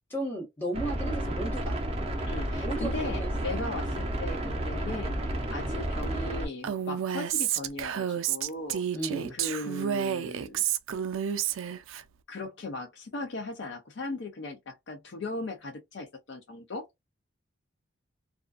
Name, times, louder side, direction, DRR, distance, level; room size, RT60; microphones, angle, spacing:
voice 1, 0.1-1.8 2.6-3.3 5.6-5.8 8.9-9.3, right 1 dB, 10° left, 1.1 m, -35 dB
sound 1, 0.7-6.5, right 1 dB, 30° right, 0.5 m, -31 dB
voice 2, 2.2-8.8 9.3-10.6 12.3-16.8, left 2 dB, 60° left, 0.5 m, -38 dB
Female speech woman speaking, 6.6-12.0, right 9 dB, 80° right, 0.3 m, -30 dB
2.4 x 2.3 x 2.3 m
head